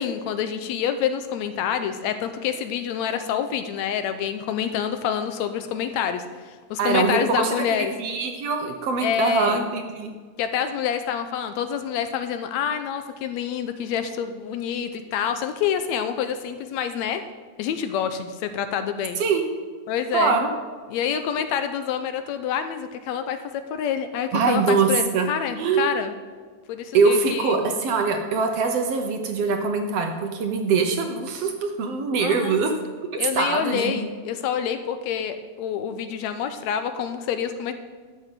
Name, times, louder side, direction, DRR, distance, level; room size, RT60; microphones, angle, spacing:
voice 1, 0.0-7.9 9.0-9.6 10.4-17.2 17.6-19.2 19.9-20.4 20.9-26.1 26.7-27.7 32.2-32.6 33.2-37.7, left 8 dB, 80° left, 9 dB, 1.8 m, -27 dB
voice 2, 6.8-10.1 19.2-19.5 20.1-20.5 24.3-25.3 25.6-25.9 26.9-32.7 33.1-34.1, right 4 dB, 65° right, 5 dB, 1.8 m, -23 dB
12.0 x 6.7 x 7.5 m, 1.5 s
omnidirectional pair, 3.4 m